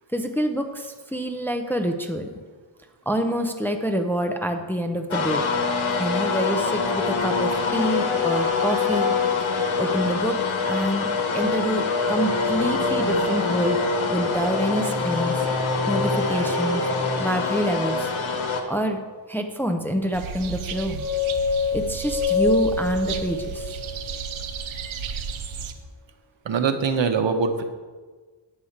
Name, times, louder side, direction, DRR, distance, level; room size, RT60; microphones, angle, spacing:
voice 1, 0.1-2.3 3.1-5.5 6.0-9.1 9.8-10.4 10.6-11.1 11.3-13.8 14.1-15.4 15.9-16.8 17.2-18.1 18.7-19.0 19.3-21.0 21.7-23.7, equal, 5° left, 4 dB, 0.6 m, -26 dB
sound 1, 5.1-18.6, left 4 dB, 85° left, 1.3 m, -24 dB
sound 2, 20.1-25.7, right 6 dB, 85° right, 0.8 m, -34 dB
sound 3, 20.6-24.7, left 4 dB, 40° right, 2.4 m, -26 dB
voice 2, 26.4-27.6, right 5 dB, 70° right, 6 dB, 1.0 m, -22 dB
9.5 x 4.9 x 7.2 m, 1.4 s
wide cardioid pair, 135°, 47 cm